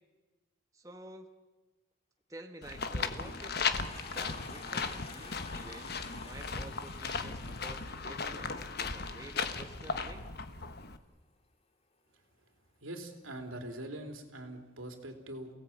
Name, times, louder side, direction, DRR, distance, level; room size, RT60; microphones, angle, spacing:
voice 1, 0.7-1.3 2.3-10.3, right 1 dB, 15° right, 5 dB, 1.2 m, -50 dB
sound 1, 2.6-11.0, left 4 dB, 50° left, 1.3 m, -37 dB
Toilet flush, 2.8-9.0, left 3 dB, 30° left, 2.1 m, -51 dB
voice 2, 12.8-15.5, right 1 dB, 85° right, 4 dB, 3.4 m, -43 dB
29.0 x 17.5 x 8.8 m, 1.3 s
head